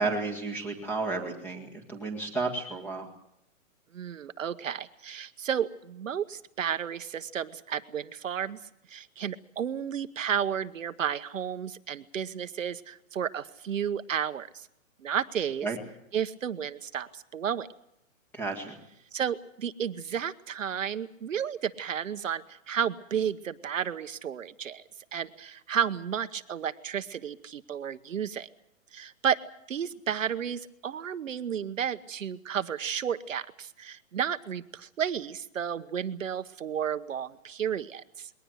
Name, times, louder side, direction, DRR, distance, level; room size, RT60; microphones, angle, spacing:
voice 1, 0.0-3.1 15.6-15.8 18.3-18.8, right 3 dB, 5° left, 3 dB, 1.9 m, -32 dB
voice 2, 3.9-8.6 8.9-14.7 15.0-15.7 16.1-17.7 19.1-24.8 25.1-28.5 28.9-29.4 29.7-38.3, right 8 dB, 65° right, 11 dB, 1.1 m, -32 dB
21.0 x 18.5 x 8.1 m, 0.77 s
hypercardioid pair, 175°, 42 cm